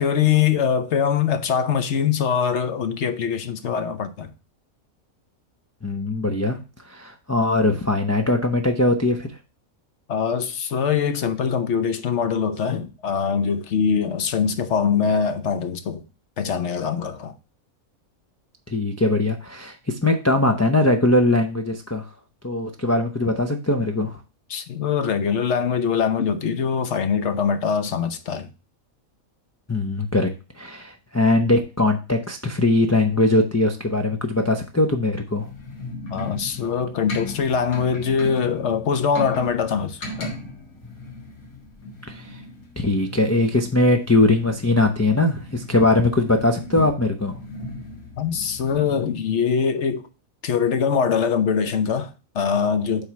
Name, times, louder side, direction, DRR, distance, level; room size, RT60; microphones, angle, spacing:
voice 1, 0.0-4.3 10.1-16.0 16.4-17.3 24.5-28.5 36.1-40.4 48.2-50.0 50.4-53.1, left 7 dB, 60° left, 1.0 m, -23 dB
voice 2, 5.8-6.6 6.8-9.3 18.7-22.0 22.4-24.2 29.7-30.3 30.6-35.5 42.1-42.4 42.8-47.4, left 2 dB, 20° left, 0.4 m, -21 dB
sound 1, 35.3-49.0, left 1 dB, 80° left, 2.2 m, -37 dB
8.3 x 3.1 x 5.8 m
omnidirectional pair, 1.5 m